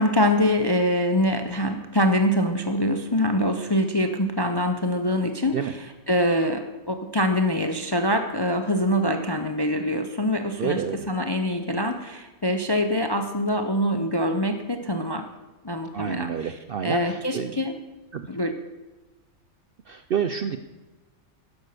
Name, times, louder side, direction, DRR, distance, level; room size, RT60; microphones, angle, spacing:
voice 1, 0.0-15.2 15.6-16.6 16.8-17.7 18.3-18.5, equal, 30° left, 7 dB, 0.4 m, -24 dB
voice 2, 10.6-11.1 15.9-17.5 18.1-18.3 19.9-20.6, right 8 dB, 60° right, 9 dB, 0.6 m, -28 dB
11.5 x 11.0 x 6.7 m, 1.2 s
omnidirectional pair, 1.5 m